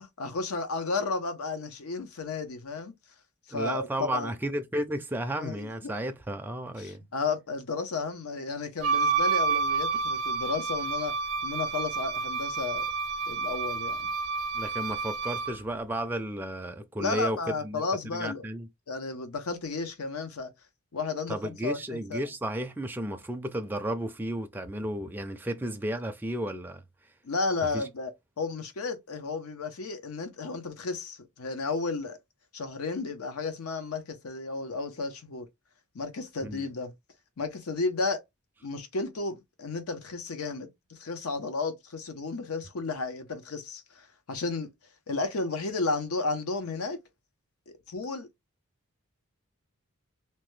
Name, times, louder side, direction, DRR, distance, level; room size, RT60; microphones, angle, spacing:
voice 1, 0.0-2.9 3.5-4.3 5.4-5.9 6.8-11.1 11.4-12.9 13.3-14.1 17.0-18.4 18.9-20.5 20.9-22.3 27.2-28.1 28.4-32.2 32.5-35.5 35.9-36.9 37.4-38.2 38.6-44.7 45.1-47.0 47.7-48.3, left 3 dB, 85° left, 0.7 m, -33 dB
voice 2, 3.5-7.0 14.5-17.8 18.1-18.7 21.3-26.8 27.7-27.8 36.4-36.7, right 1 dB, 10° right, 0.4 m, -33 dB
Wind instrument woodwind instrument, 8.8-15.6, right 5 dB, 85° right, 0.4 m, -29 dB
2.8 x 2.2 x 3.1 m
head